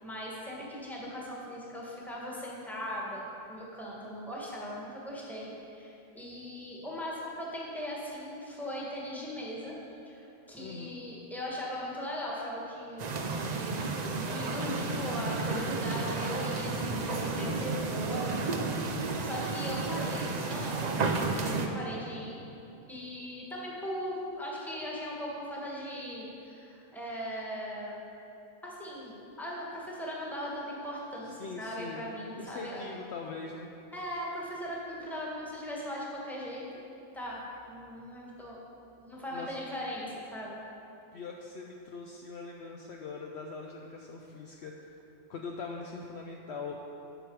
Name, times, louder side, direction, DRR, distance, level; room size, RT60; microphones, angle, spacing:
voice 1, 0.0-3.2 3.5-9.8 10.1-13.1 13.4-22.4 22.9-28.0 28.6-32.8 33.9-36.7 37.1-38.6 39.0-40.6, equal, ahead, -4 dB, 1.3 m, -39 dB
voice 2, 10.6-11.0 31.4-32.1 32.4-33.7 39.3-39.5 41.1-44.7 45.3-46.8, left 4 dB, 65° left, 1 dB, 0.7 m, -42 dB
sound 1, 13.0-21.7, right 3 dB, 55° right, 0.5 m, -32 dB
11.5 x 4.7 x 4.6 m, 2.8 s
omnidirectional pair, 1.4 m